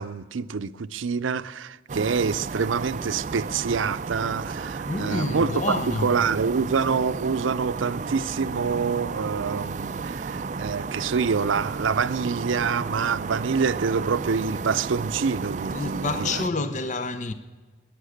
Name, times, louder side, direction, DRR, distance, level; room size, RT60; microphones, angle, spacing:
voice 1, 0.0-16.7, right 5 dB, 90° right, 0.5 m, -26 dB
sound 1, 1.9-16.5, right 4 dB, 40° right, 0.4 m, -33 dB
voice 2, 4.9-6.1 15.7-17.3, left 3 dB, 40° left, 0.7 m, -28 dB
19.5 x 11.0 x 6.5 m
head